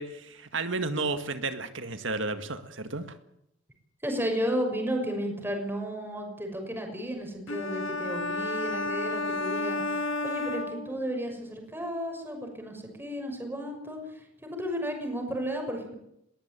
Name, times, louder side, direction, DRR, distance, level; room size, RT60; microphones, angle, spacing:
voice 1, 0.0-3.2, right 3 dB, 70° right, 9 dB, 1.9 m, -32 dB
voice 2, 4.0-14.2 14.5-15.9, equal, 10° right, 3 dB, 6.2 m, -33 dB
sound 1, 7.5-11.4, left 2 dB, 75° left, 2.7 m, -32 dB
21.5 x 17.0 x 9.3 m, 0.80 s
head